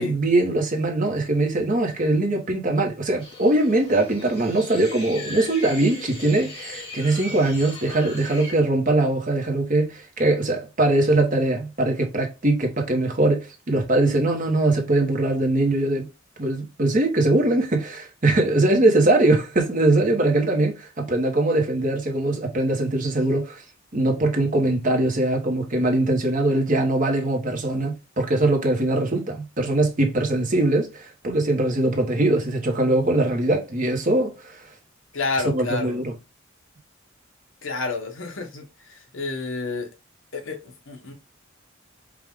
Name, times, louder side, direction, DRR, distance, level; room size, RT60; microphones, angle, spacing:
voice 1, 0.0-16.1 16.4-23.6 23.9-34.6 35.4-36.1, right 2 dB, 40° right, 1.1 m, -21 dB
sound 1, 3.2-8.5, left 2 dB, 30° left, 1.7 m, -38 dB
voice 2, 35.1-36.0 37.6-39.9 40.3-41.1, left 3 dB, 65° left, 1.1 m, -30 dB
4.9 x 2.4 x 3.6 m
head